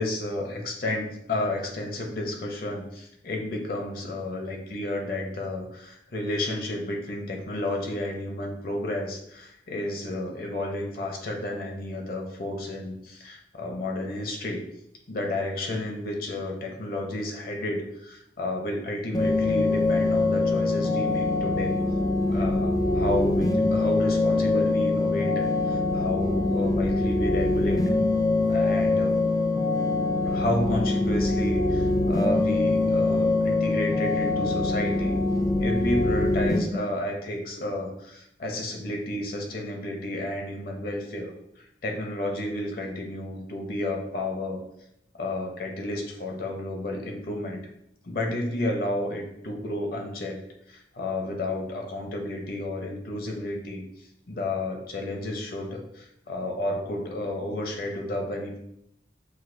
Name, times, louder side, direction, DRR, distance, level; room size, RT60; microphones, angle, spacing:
voice 1, 0.0-14.7 15.1-21.8 22.3-27.8 28.5-29.2 30.2-35.2 35.6-44.6 45.2-47.6 48.0-50.4 50.7-53.8 54.3-58.6, left 1 dB, 55° left, 2 dB, 0.7 m, -31 dB
sound 1, 19.1-36.6, left 2 dB, 20° left, 0.3 m, -24 dB
6.2 x 2.3 x 2.6 m, 0.77 s
head